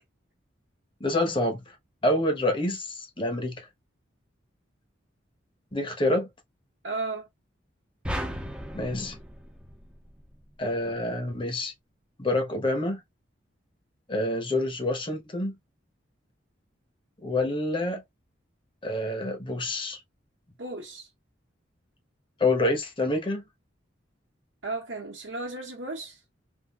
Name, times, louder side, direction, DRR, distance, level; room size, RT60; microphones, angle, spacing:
voice 1, 1.0-1.7 2.0-3.7 5.7-6.3 8.7-9.2 10.6-11.7 12.2-13.0 14.1-15.5 17.2-18.0 18.8-20.0 22.4-23.4, left 1 dB, 25° left, 0.9 m, -27 dB
voice 2, 6.8-7.3 20.6-21.1 24.6-26.2, right 3 dB, 70° right, 0.9 m, -34 dB
sound 1, 8.0-10.5, equal, 5° right, 0.6 m, -36 dB
3.6 x 2.5 x 2.3 m
head